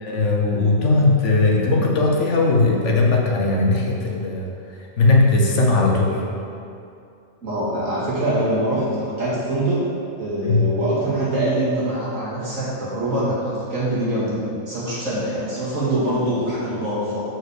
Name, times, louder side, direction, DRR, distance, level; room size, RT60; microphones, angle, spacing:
voice 1, 0.0-4.5 5.0-6.2 10.4-10.8, left 3 dB, 65° left, -1 dB, 1.3 m, -18 dB
voice 2, 7.4-9.8 10.2-17.2, right 1 dB, 75° right, -9 dB, 2.6 m, -24 dB
6.4 x 4.7 x 6.6 m, 2.5 s
omnidirectional pair, 1.4 m